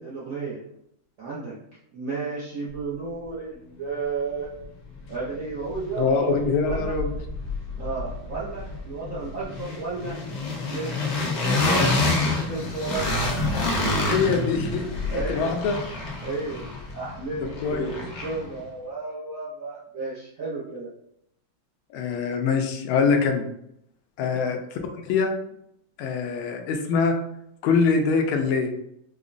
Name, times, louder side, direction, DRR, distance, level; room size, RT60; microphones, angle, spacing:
voice 1, 0.0-0.6 1.2-1.5 1.9-4.5 5.1-6.3 6.6-7.0 7.8-10.1 10.6-13.4 15.1-15.7 16.2-20.9 24.3-24.5, right 4 dB, 65° right, -7 dB, 0.8 m, -33 dB
sound 1, 4.6-4.7 5.0-6.1 6.4-18.6, left 2 dB, 65° left, 1.1 m, -28 dB
voice 2, 6.0-7.1 14.0-14.8 15.3-15.8 17.4-17.9 21.9-23.5 24.2-25.3 26.0-27.1 27.6-28.7, left 5 dB, 80° left, 4 dB, 1.4 m, -24 dB
4.9 x 2.1 x 2.5 m, 0.76 s
omnidirectional pair, 2.3 m